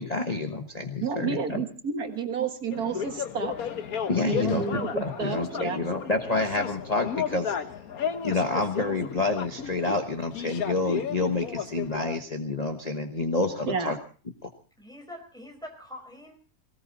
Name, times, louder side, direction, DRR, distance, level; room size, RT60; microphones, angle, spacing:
voice 1, 0.0-1.6 4.1-7.6 8.2-14.0 14.4-14.5, left 3 dB, 30° left, 4 dB, 1.2 m, -28 dB
voice 2, 1.0-3.6 4.2-5.8 13.7-14.0, right 5 dB, 80° right, 6 dB, 2.1 m, -30 dB
sound 1, 2.7-12.2, left 7 dB, 70° left, 1.5 m, -34 dB
voice 3, 14.8-16.4, left 1 dB, ahead, 2 dB, 5.0 m, -44 dB
19.0 x 18.0 x 4.1 m, 0.39 s
omnidirectional pair, 1.6 m